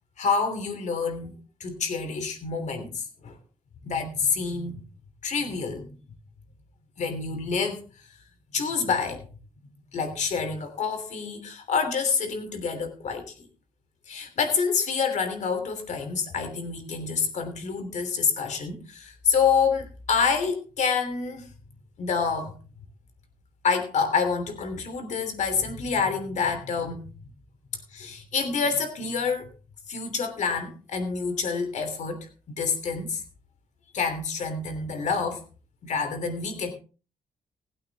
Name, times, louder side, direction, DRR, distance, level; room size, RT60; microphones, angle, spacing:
voice 1, 0.2-3.3 3.8-4.8 5.2-6.0 7.0-8.1 8.5-9.3 9.9-13.5 14.1-21.5 22.0-22.5 23.6-27.0 27.9-29.5 29.9-33.2 33.9-35.4 35.8-36.7, left 5 dB, 50° left, 7 dB, 3.2 m, -27 dB
20.0 x 8.7 x 3.5 m, 0.36 s
wide cardioid pair, 170°, 15 cm